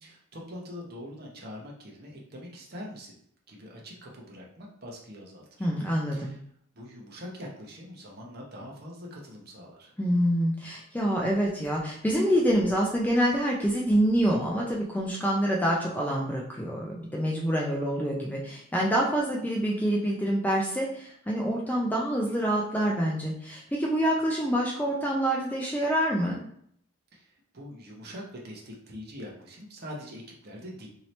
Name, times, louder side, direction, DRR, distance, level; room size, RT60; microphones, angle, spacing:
voice 1, 0.0-3.2 3.5-5.7 6.1-6.4 6.7-9.9 27.1-30.9, equal, 45° right, -2 dB, 0.8 m, -43 dB
voice 2, 5.6-6.3 10.0-26.4, equal, 5° left, -3 dB, 0.3 m, -26 dB
2.8 x 2.8 x 3.1 m, 0.65 s
head